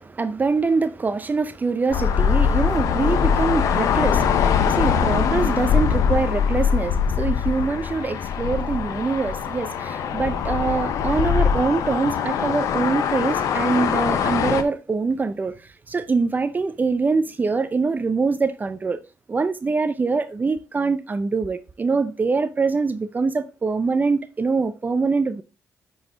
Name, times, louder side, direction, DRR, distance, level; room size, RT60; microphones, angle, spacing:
voice 1, 0.0-19.0 19.3-25.4, right 4 dB, 30° right, 0.6 m, -24 dB
sound 1, 1.9-14.6, left 7 dB, 75° left, 0.9 m, -22 dB
9.7 x 4.0 x 4.0 m
cardioid pair, 75°, 6 cm